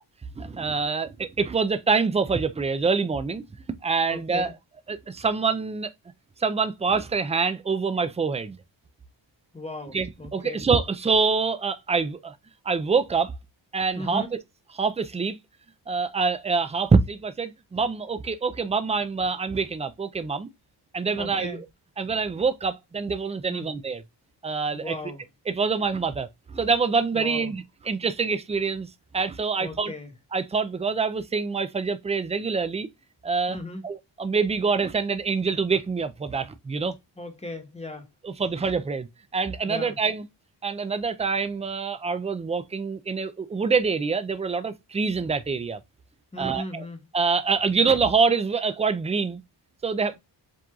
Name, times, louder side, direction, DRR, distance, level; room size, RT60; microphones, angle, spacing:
voice 1, 0.4-4.5 4.9-5.9 6.4-8.6 9.9-12.3 12.7-13.3 13.7-14.2 14.8-15.4 15.9-20.5 20.9-21.6 22.0-24.0 24.4-25.0 25.5-28.9 29.1-29.9 30.3-32.9 33.2-33.6 33.8-37.0 38.2-39.1 39.3-40.3 40.6-45.8 46.4-46.9 47.1-49.4 49.8-50.2, right 5 dB, 15° right, 0.4 m, -25 dB
voice 2, 4.1-4.5 9.5-10.6 14.0-14.3 21.2-21.6 23.5-23.7 24.7-25.2 27.1-27.5 29.6-30.1 33.5-33.8 37.2-38.1 39.7-40.0 46.3-47.0, left 2 dB, 15° left, 1.1 m, -36 dB
7.5 x 2.6 x 2.4 m
cardioid pair, 95°, 44 cm